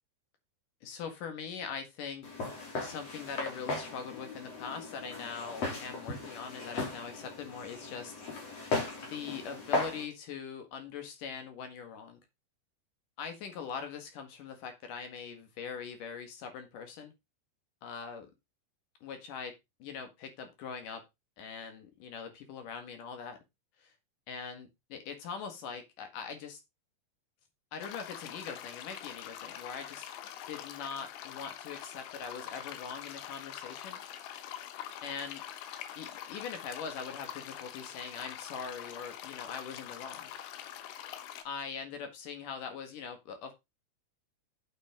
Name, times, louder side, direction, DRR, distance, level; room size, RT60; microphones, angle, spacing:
voice 1, 0.8-2.3 2.8-8.2 9.1-12.2 13.2-17.1 17.8-18.3 19.0-19.5 19.8-21.0 21.4-23.4 23.8-23.9 24.3-26.6 27.7-30.1 30.5-34.0 35.0-35.4 36.0-40.3 41.4-43.5, left 6 dB, 55° left, 7 dB, 2.7 m, -42 dB
Walk footsteps, 2.2-10.0, left 3 dB, 35° left, 3.5 m, -37 dB
sound 1, 27.8-41.4, left 11 dB, 80° left, 3.5 m, -44 dB
9.0 x 8.2 x 3.8 m, 0.22 s
omnidirectional pair, 5.6 m